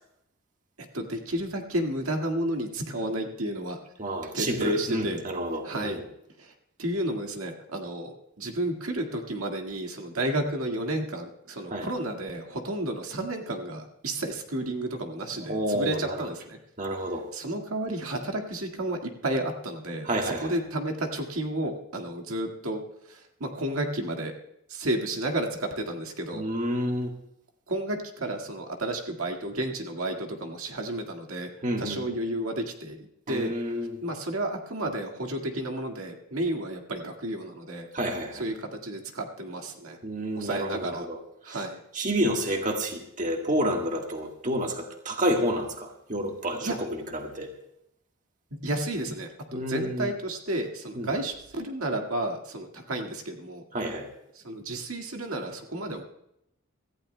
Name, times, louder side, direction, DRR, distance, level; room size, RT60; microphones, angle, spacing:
voice 1, 0.8-3.8 4.3-5.2 5.6-6.0 6.4-6.5 6.8-16.6 17.3-22.8 23.1-24.3 24.7-26.4 27.7-31.5 31.8-33.0 33.3-33.5 34.0-37.9 38.4-40.0 40.4-41.1 41.5-41.8 46.6-46.8 48.6-53.6 54.4-56.0, right 1 dB, 85° right, 3 dB, 1.9 m, -31 dB
voice 2, 4.0-6.0 11.7-11.9 15.4-16.3 16.8-17.3 20.0-20.6 26.3-27.1 31.6-32.2 33.3-34.0 37.9-38.4 40.0-41.6 41.9-47.5 49.5-50.1 50.9-51.1 53.7-54.1, equal, 35° right, 2 dB, 1.5 m, -30 dB
25.5 x 14.5 x 2.2 m, 0.79 s
head